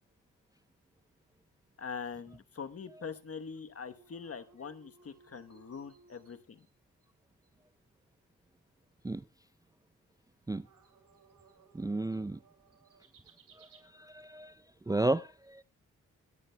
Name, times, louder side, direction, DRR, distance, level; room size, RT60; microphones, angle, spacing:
voice 1, 1.8-6.7, left 6 dB, 45° left, 1.1 m, -43 dB
sound 1, 3.8-6.7 7.0-7.1 7.4-7.5 10.6-13.8, right 5 dB, 80° right, 2.6 m, -62 dB
voice 2, 11.7-12.4 13.6-13.7 13.9-14.5 14.9-15.6, right 2 dB, 10° right, 0.5 m, -33 dB
21.5 x 11.0 x 2.2 m
cardioid pair, 55°, 32 cm